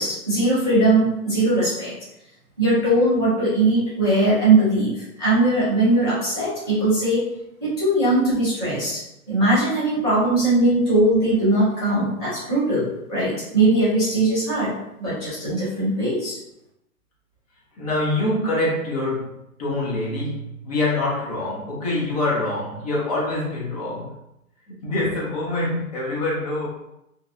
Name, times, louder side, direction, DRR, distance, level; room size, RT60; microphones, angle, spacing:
voice 1, 0.0-1.9 2.6-7.2 7.6-9.0 9.3-14.7 15.0-16.4, right 2 dB, 20° right, -12 dB, 0.3 m, -20 dB
voice 2, 17.8-24.2 24.7-26.7, left 2 dB, 25° left, -4 dB, 0.6 m, -25 dB
2.5 x 2.2 x 2.4 m, 0.84 s
hypercardioid pair, 145°, 44 cm